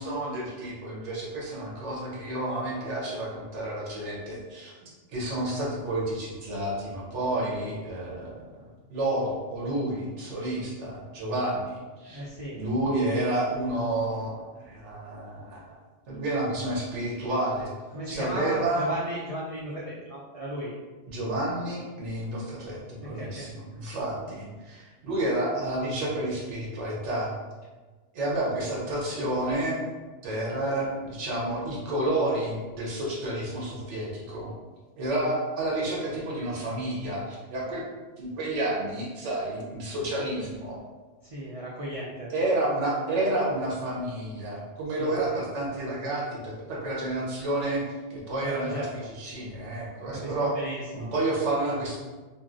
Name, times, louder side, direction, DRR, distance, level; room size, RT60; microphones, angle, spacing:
voice 1, 0.0-4.7 5.1-8.4 8.9-12.3 12.6-15.7 16.1-17.7 18.1-18.9 21.1-27.3 28.1-29.8 30.2-34.5 35.0-37.8 38.2-40.8 42.3-47.8 48.1-50.5 50.9-52.0, right 1 dB, 75° right, -4 dB, 1.1 m, -30 dB
voice 2, 12.1-12.6 17.9-20.7 23.0-23.5 41.2-42.3 45.0-45.4 48.4-49.1 50.1-51.1, right 1 dB, 60° right, -6 dB, 0.3 m, -35 dB
3.1 x 2.6 x 2.4 m, 1.3 s
omnidirectional pair, 1.2 m